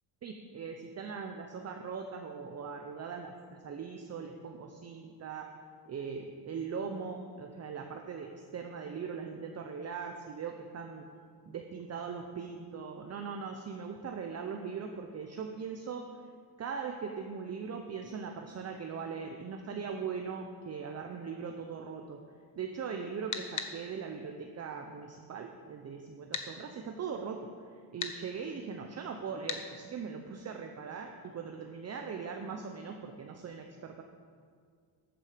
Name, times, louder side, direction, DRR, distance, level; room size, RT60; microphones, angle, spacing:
voice 1, 0.2-5.5 5.9-11.1 11.5-16.1 16.6-22.2 22.6-27.5 27.9-34.0, right 6 dB, 35° right, 4 dB, 0.8 m, -40 dB
sound 1, 23.3-23.7 26.3-26.5 28.0-28.2 29.5-29.6, left 7 dB, 40° left, 1.1 m, -35 dB
14.0 x 9.0 x 5.1 m, 2.1 s
cardioid pair, 140°, 45 cm